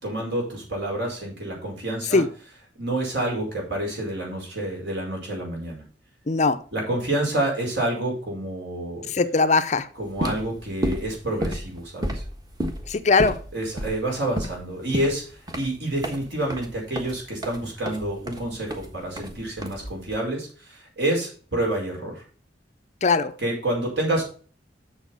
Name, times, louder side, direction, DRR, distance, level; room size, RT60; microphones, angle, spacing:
voice 1, 0.0-2.2 2.8-5.8 6.7-9.0 10.0-12.2 13.5-15.2 15.5-22.2 23.4-24.2, right 1 dB, 65° right, 5.2 m, -28 dB
voice 2, 6.3-6.6 9.1-9.9 12.9-13.4 23.0-23.3, left 4 dB, 40° left, 0.6 m, -20 dB
sound 1, 10.0-20.2, equal, 20° right, 1.3 m, -32 dB
7.4 x 6.9 x 5.4 m
head